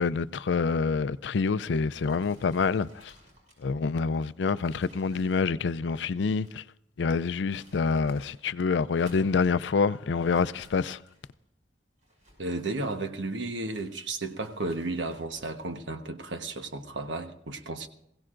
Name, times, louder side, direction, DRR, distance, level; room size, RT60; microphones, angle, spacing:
voice 1, 0.0-3.1 3.6-6.6 7.0-11.0, left 5 dB, 75° left, 0.4 m, -27 dB
sound 1, 1.9-6.7 7.3-8.4 8.8-9.5 10.2-11.4 12.0-13.3 13.7-15.7, equal, 45° right, 5.9 m, -58 dB
voice 2, 12.4-17.9, right 2 dB, 85° right, 1.2 m, -33 dB
22.0 x 16.0 x 2.5 m
head